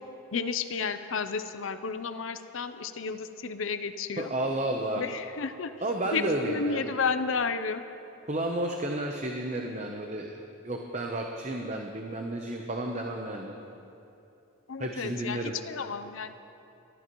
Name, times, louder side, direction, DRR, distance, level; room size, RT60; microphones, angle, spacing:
voice 1, 0.3-4.3 5.0-5.7 6.1-7.8 14.7-16.3, left 5 dB, 75° left, 10 dB, 0.6 m, -32 dB
voice 2, 4.2-5.0 5.8-6.9 8.3-10.4 10.6-13.5 14.8-15.6, right 1 dB, 35° right, 2 dB, 0.8 m, -32 dB
23.0 x 14.0 x 3.1 m, 2.9 s
head